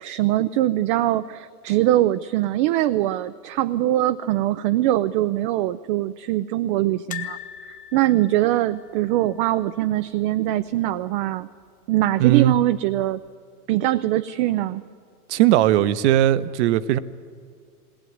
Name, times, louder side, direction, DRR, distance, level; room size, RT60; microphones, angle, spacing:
voice 1, 0.0-7.4 7.9-11.5 11.9-13.2 13.7-14.8, right 14 dB, 35° right, 12 dB, 0.5 m, -22 dB
sound 1, 7.1-10.2 10.4-10.6 10.9-11.0 12.2-12.7 13.3-13.4, left 11 dB, 15° left, 1.2 m, -40 dB
voice 2, 12.2-12.6 15.3-17.0, right 13 dB, 50° right, 15 dB, 1.0 m, -18 dB
20.0 x 19.0 x 9.4 m, 2.1 s
hypercardioid pair, 120°, 45 cm